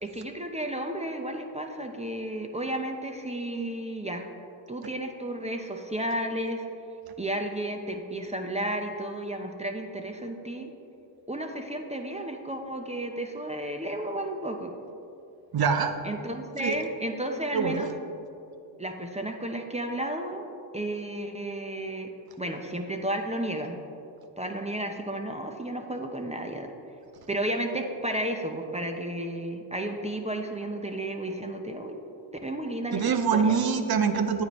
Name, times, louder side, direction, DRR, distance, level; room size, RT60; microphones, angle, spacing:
voice 1, 0.0-4.3 4.7-6.6 7.2-10.7 11.3-14.7 16.0-17.9 18.8-20.5 20.7-22.1 22.4-23.8 24.4-26.7 27.3-32.0 32.4-33.6, right 1 dB, 15° right, 4 dB, 0.7 m, -32 dB
voice 2, 15.5-15.9 16.6-16.8 17.5-17.9 32.9-34.4, right 6 dB, 45° right, 8 dB, 0.8 m, -24 dB
9.3 x 8.1 x 3.1 m, 2.7 s
supercardioid pair, 60°, 50 cm